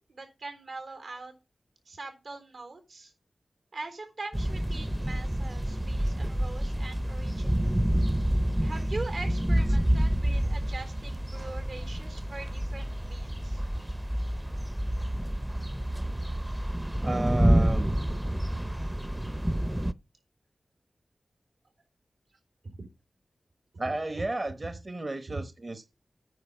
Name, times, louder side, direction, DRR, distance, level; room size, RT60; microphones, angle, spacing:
voice 1, 0.0-1.3 1.9-3.1 3.7-7.7 8.6-13.6 22.6-22.9 23.8-24.2 25.3-25.5, right 3 dB, 85° right, 3.6 m, -42 dB
sound 1, 4.3-19.9, right 1 dB, 15° right, 0.6 m, -28 dB
voice 2, 17.0-17.9 23.8-25.9, right 2 dB, 40° right, 0.9 m, -33 dB
9.4 x 5.1 x 7.2 m
wide cardioid pair, 90°, 0 cm